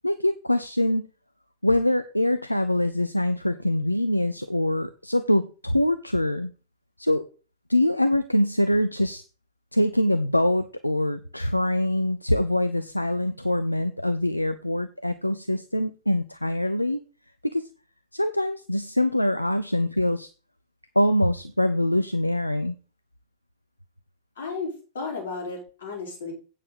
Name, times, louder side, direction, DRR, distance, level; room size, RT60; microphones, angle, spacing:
voice 1, 0.0-1.0 1.6-6.5 7.0-7.3 7.7-9.2 9.7-17.0 17.5-17.7 18.1-20.3 21.0-22.7, left 1 dB, 85° left, 12 dB, 0.5 m, -24 dB
voice 2, 24.4-26.3, left 4 dB, 65° left, -1 dB, 4.7 m, -34 dB
8.9 x 6.5 x 5.5 m, 0.35 s
figure-of-eight pair, 90°, 0 cm